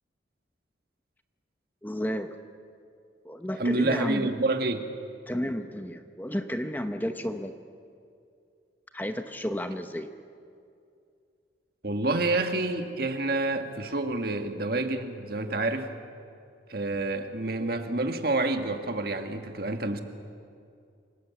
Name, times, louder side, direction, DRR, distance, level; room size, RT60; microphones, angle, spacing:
voice 1, 1.8-2.4 3.2-4.3 5.3-7.5 8.9-10.1, equal, 10° left, 7 dB, 0.9 m, -32 dB
voice 2, 3.6-4.8 11.8-15.9 16.7-20.0, right 2 dB, 50° right, 6 dB, 1.7 m, -28 dB
28.0 x 19.5 x 8.4 m, 2.4 s
head